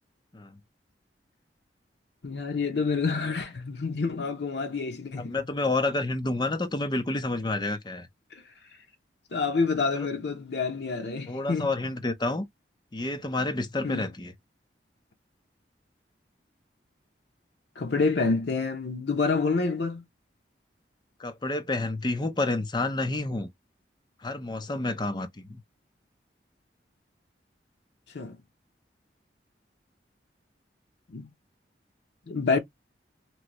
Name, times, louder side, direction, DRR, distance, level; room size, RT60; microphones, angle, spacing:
voice 1, 2.2-5.4 8.3-8.4 9.3-11.7 13.8-14.0 17.8-20.0 28.1-28.4 31.1-31.3 32.3-32.6, left 4 dB, 70° left, 0.7 m, -28 dB
voice 2, 5.2-8.1 9.9-10.1 11.3-12.4 12.9-14.3 21.2-23.5 24.2-25.6, left 2 dB, 25° left, 0.5 m, -29 dB
3.1 x 2.6 x 2.9 m
head